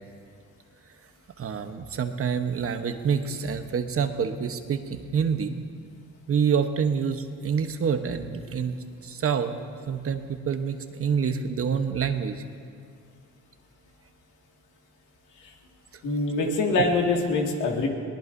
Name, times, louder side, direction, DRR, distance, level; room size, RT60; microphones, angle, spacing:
voice 1, 1.4-5.6 6.3-8.8 9.0-9.5 9.9-12.4 16.4-16.5, right 6 dB, 50° right, 7 dB, 1.0 m, -27 dB
voice 2, 16.0-17.9, left 3 dB, 80° left, 0 dB, 2.1 m, -24 dB
22.0 x 18.5 x 2.7 m, 2.2 s
cardioid pair, 90°, 30 cm